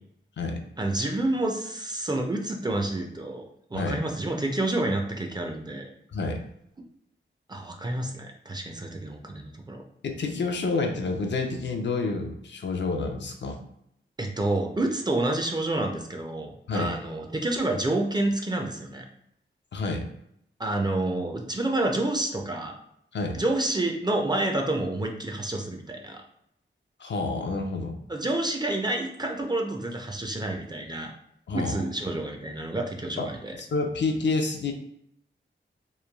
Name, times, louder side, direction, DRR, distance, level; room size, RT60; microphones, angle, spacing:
voice 1, 0.8-3.4 3.7-5.9 7.5-9.8 14.2-19.0 20.6-22.7 23.3-26.2 28.1-31.1 31.5-33.5, right 2 dB, 20° right, 2 dB, 0.4 m, -29 dB
voice 2, 6.1-6.4 10.0-13.6 16.7-16.9 19.7-20.1 23.1-23.4 27.0-28.0 31.5-31.8 33.2-34.7, left 3 dB, 60° left, 3 dB, 0.4 m, -29 dB
3.0 x 2.2 x 2.2 m, 0.74 s
cardioid pair, 55°, 21 cm